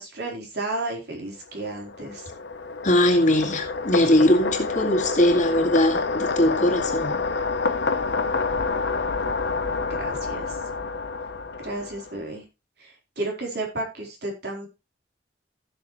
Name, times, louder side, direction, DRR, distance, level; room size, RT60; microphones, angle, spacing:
voice 1, 0.0-2.3 8.5-8.8 10.0-10.6 11.6-12.5 12.8-14.7, right 2 dB, 65° right, 4.2 m, -33 dB
sound 1, 1.5-12.2, left 4 dB, 70° left, 1.0 m, -28 dB
voice 2, 2.8-7.2, left 1 dB, 45° left, 2.3 m, -20 dB
16.0 x 6.7 x 3.2 m
head